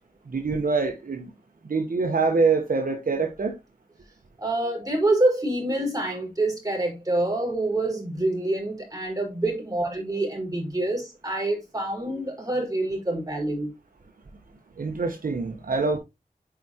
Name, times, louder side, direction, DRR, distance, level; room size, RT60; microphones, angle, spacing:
voice 1, 0.3-1.3 1.6-3.5 14.8-16.0, right 4 dB, 75° right, 1.1 m, -25 dB
voice 2, 4.4-13.7, right 2 dB, 25° right, 4.6 m, -26 dB
8.6 x 4.9 x 2.9 m
wide cardioid pair, 55°, 15 cm